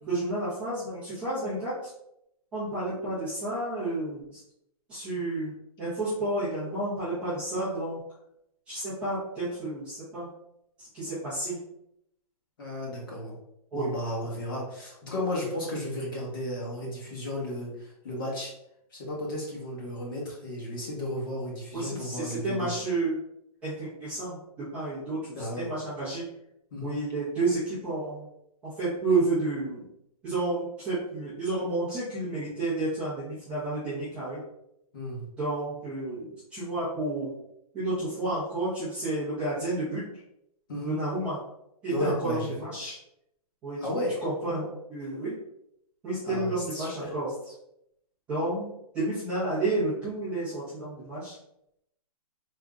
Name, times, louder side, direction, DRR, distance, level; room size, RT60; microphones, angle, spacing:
voice 1, 0.1-1.7 2.5-4.4 4.9-5.5 5.8-8.0 8.7-10.3 10.9-11.6 13.7-13.9 14.2-14.4 21.7-23.2 23.6-24.4 24.7-26.2 26.8-28.2 28.6-29.8 30.2-34.4 35.4-37.3 37.7-40.0 40.8-41.4 41.8-42.9 43.6-43.8 44.2-45.4 46.0-47.3 48.3-48.7 48.9-51.3, right 2 dB, 5° right, -15 dB, 0.4 m, -31 dB
voice 2, 12.6-13.3 13.7-18.5 18.9-22.7 25.3-25.7 26.7-27.0 34.9-35.3 40.7-41.0 41.9-42.6 43.8-44.2 46.2-47.1, left 1 dB, 35° left, -4 dB, 1.0 m, -34 dB
3.5 x 2.0 x 3.5 m, 0.78 s
hypercardioid pair, 175°, 20 cm